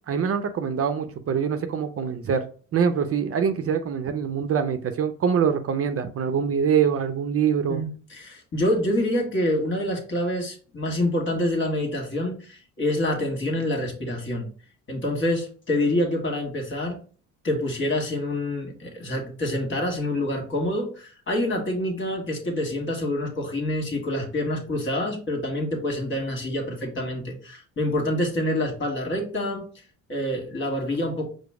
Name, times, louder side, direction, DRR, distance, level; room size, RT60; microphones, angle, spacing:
voice 1, 0.1-2.4 2.7-7.8, right 7 dB, 50° right, 8 dB, 0.6 m, -24 dB
voice 2, 7.7-14.5 14.9-17.0 17.4-29.6 30.1-31.3, left 1 dB, 40° left, 1 dB, 1.7 m, -27 dB
5.0 x 2.0 x 4.7 m, 0.40 s
cardioid pair, 90°, 30 cm